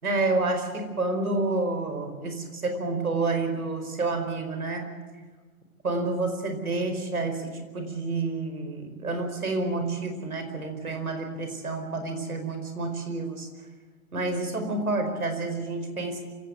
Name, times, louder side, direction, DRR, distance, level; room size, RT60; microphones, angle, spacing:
voice 1, 0.0-4.9 5.8-13.5 14.1-16.3, right 3 dB, 80° right, 6 dB, 4.8 m, -29 dB
27.0 x 16.5 x 8.2 m, 1.4 s
figure-of-eight pair, 100°, 43 cm